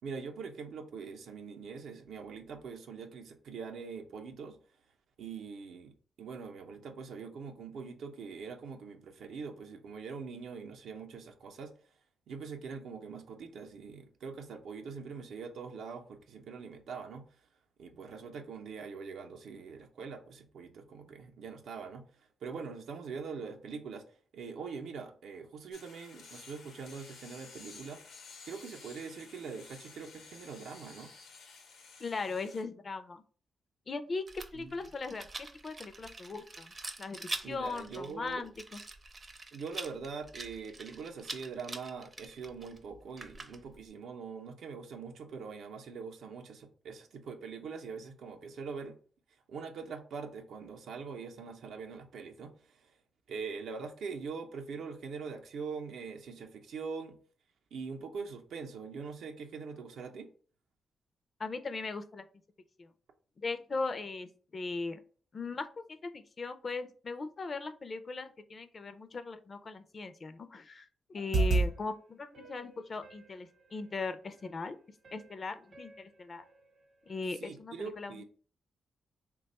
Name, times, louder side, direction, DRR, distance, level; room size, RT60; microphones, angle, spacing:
voice 1, 0.0-4.6 5.2-11.7 12.3-17.2 17.8-24.0 24.3-28.0 28.5-31.1 34.5-34.7 37.4-38.5 39.5-49.0 49.5-52.9 53.3-57.2 57.7-60.3 77.3-78.2, right 5 dB, 80° right, 0.5 m, -43 dB
sound 1, 25.7-32.6, left 4 dB, 90° left, 0.9 m, -53 dB
voice 2, 32.0-33.2 33.9-34.2 34.5-35.3 35.6-36.7 37.0-38.8 61.4-62.2 62.8-62.9 63.4-65.0 65.3-74.8 75.1-76.4 77.1-78.2, left 3 dB, 40° left, 0.4 m, -39 dB
Rattle, 34.3-43.9, right 2 dB, 30° right, 0.5 m, -45 dB
sound 2, 71.2-71.7 72.3-73.3 74.4-74.5 75.0-75.3 75.7-76.0 76.4-76.5, right 3 dB, 55° right, 0.8 m, -31 dB
3.2 x 2.2 x 4.1 m
cardioid pair, 110°, 0 cm